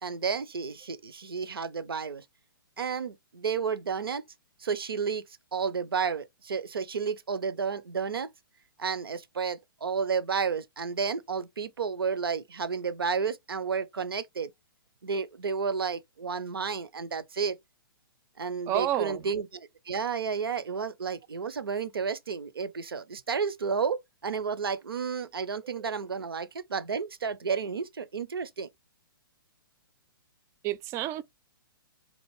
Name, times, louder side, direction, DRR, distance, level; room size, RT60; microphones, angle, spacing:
voice 1, 0.0-2.2 2.8-4.2 4.6-5.2 5.5-8.3 8.8-14.5 15.0-17.5 18.4-28.7, right 6 dB, 85° right, 0.6 m, -31 dB
voice 2, 18.7-19.2 25.6-25.9 30.6-31.2, right 13 dB, 25° right, 0.3 m, -30 dB
4.1 x 2.5 x 3.0 m
hypercardioid pair, 125°, 12 cm